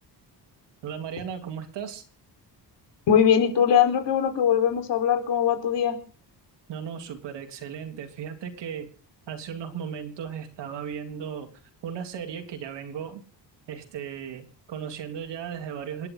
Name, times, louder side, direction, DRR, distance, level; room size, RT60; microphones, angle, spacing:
voice 1, 0.8-2.0 6.7-8.9 9.3-11.5 11.8-13.2 13.7-16.1, right 8 dB, 75° right, 5 dB, 3.5 m, -36 dB
voice 2, 3.1-6.0, left 8 dB, 80° left, 6 dB, 4.5 m, -21 dB
28.0 x 11.0 x 4.0 m, 0.38 s
cardioid pair, 160°, 42 cm